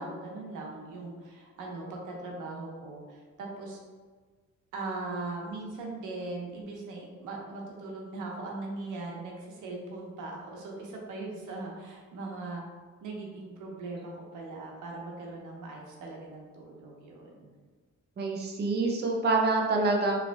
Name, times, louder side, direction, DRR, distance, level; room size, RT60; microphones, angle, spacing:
voice 1, 0.0-3.8 4.7-12.6 13.0-17.5, right 2 dB, 85° right, -1 dB, 1.0 m, -39 dB
voice 2, 18.2-20.2, right 3 dB, 35° right, 0 dB, 0.6 m, -26 dB
4.8 x 3.3 x 2.3 m, 1.4 s
cardioid pair, 90°, 30 cm